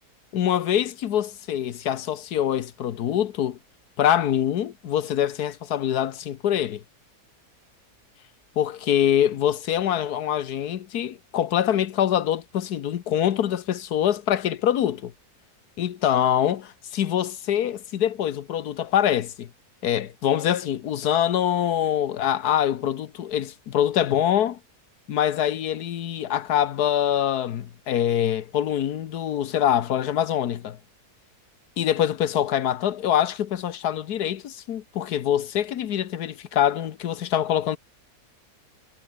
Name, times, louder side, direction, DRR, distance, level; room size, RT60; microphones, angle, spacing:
voice 1, 0.3-3.6 4.0-6.8 8.6-15.1 15.8-19.5 19.8-24.6 25.1-30.8 31.8-37.8, left 10 dB, 80° left, 1.5 m, -24 dB
omnidirectional pair, 1.7 m